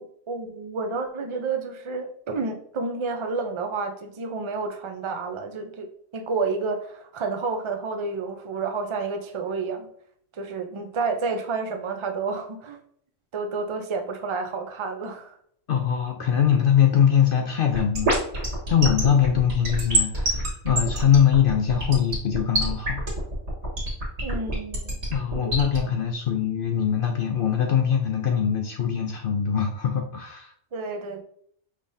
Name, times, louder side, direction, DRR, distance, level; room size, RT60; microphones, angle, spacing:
voice 1, 0.0-5.9 6.1-9.9 10.3-12.8 13.3-15.4 24.2-25.0 25.5-25.9 30.7-31.2, right 4 dB, 50° right, 5 dB, 0.3 m, -30 dB
voice 2, 15.7-18.1 18.7-23.0 25.1-30.5, left 8 dB, 60° left, 3 dB, 0.6 m, -22 dB
sound 1, 17.7-25.8, right 2 dB, 65° right, 1.7 m, -25 dB
5.2 x 3.3 x 2.6 m, 0.64 s
omnidirectional pair, 1.3 m